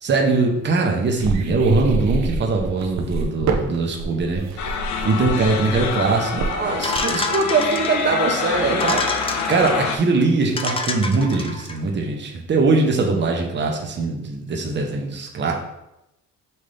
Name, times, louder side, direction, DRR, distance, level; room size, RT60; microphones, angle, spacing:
voice 1, 0.0-15.5, right 3 dB, 35° right, 0 dB, 0.9 m, -21 dB
sound 1, 1.2-7.3, right 4 dB, 65° right, 0.7 m, -27 dB
sound 2, 4.6-10.0, left 6 dB, 70° left, 0.6 m, -26 dB
sound 3, 6.8-8.1 8.7-9.7 10.2-10.3 10.6-11.8, left 3 dB, 20° left, 0.4 m, -27 dB
5.4 x 2.7 x 3.4 m, 0.91 s
cardioid pair, 90°, 30 cm